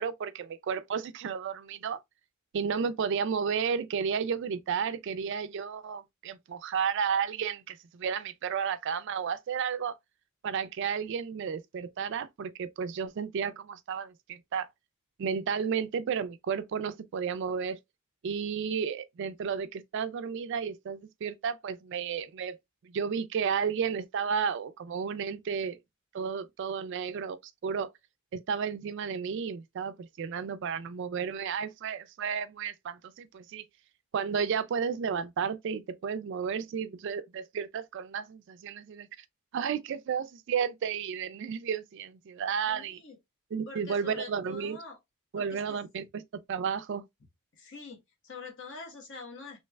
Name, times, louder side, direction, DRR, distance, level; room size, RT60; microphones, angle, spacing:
voice 1, 0.0-2.0 2.5-10.0 10.4-14.7 15.2-17.8 18.2-22.5 22.8-25.8 26.1-27.9 28.3-33.6 34.1-39.1 39.5-43.0 43.5-44.8 45.3-46.2 46.5-47.0, right 6 dB, 55° right, 0.3 m, -32 dB
voice 2, 42.7-43.2 43.7-45.0 45.3-45.8 47.5-49.6, left 4 dB, 55° left, 1.0 m, -45 dB
3.2 x 3.1 x 2.2 m
head